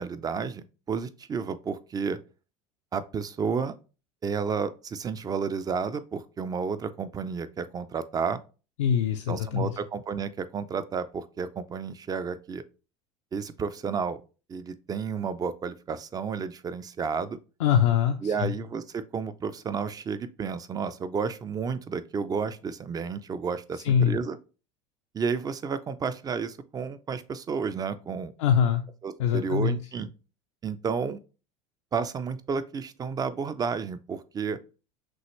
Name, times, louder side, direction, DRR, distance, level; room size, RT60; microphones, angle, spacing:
voice 1, 0.0-2.2 2.9-3.7 4.2-8.4 9.3-12.6 13.3-14.2 14.5-17.4 18.2-24.4 25.1-28.3 29.0-30.1 30.6-31.2 31.9-34.6, right 5 dB, 25° right, 0.4 m, -31 dB
voice 2, 8.8-9.7 17.6-18.5 23.8-24.2 28.4-28.8 29.2-29.8, left 8 dB, 85° left, 0.5 m, -23 dB
6.1 x 2.4 x 3.1 m
hypercardioid pair, 95°, 16 cm